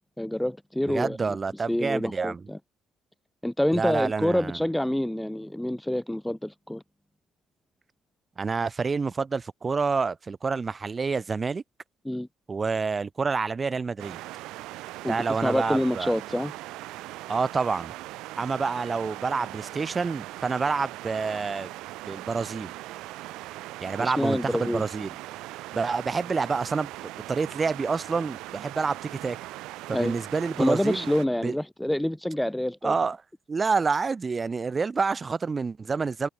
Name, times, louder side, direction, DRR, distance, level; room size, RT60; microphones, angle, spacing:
voice 1, 0.2-1.4 1.7-2.6 3.4-6.8 12.0-12.3 15.0-15.2 15.4-16.5 24.0-24.8 29.9-30.1 30.6-32.9, left 1 dB, 5° left, 0.5 m, -27 dB
voice 2, 0.9-2.4 3.7-4.6 8.4-11.6 12.5-14.2 15.1-16.1 17.3-17.9 18.4-21.7 22.1-22.7 23.8-25.1 25.7-26.9 27.3-29.4 29.9-31.1 31.4-31.6 32.8-33.2 33.5-36.3, right 4 dB, 30° right, 0.9 m, -28 dB
sound 1, 14.0-31.2, right 18 dB, 85° right, 0.6 m, -40 dB
cardioid pair, 85°, 0 cm